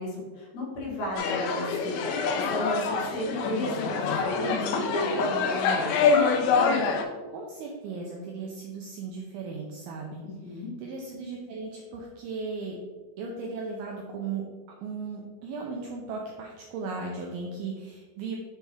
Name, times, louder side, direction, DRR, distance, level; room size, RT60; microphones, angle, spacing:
voice 1, 0.0-6.0 10.2-10.7, left 1 dB, 65° left, -4 dB, 3.1 m, -33 dB
sound 1, 1.2-7.0, left 5 dB, 85° left, 3.0 m, -26 dB
voice 2, 7.3-10.2 10.5-12.8 13.2-14.4 14.8-18.4, right 4 dB, 90° right, -1 dB, 2.1 m, -36 dB
7.1 x 4.5 x 3.4 m, 1.4 s
omnidirectional pair, 5.1 m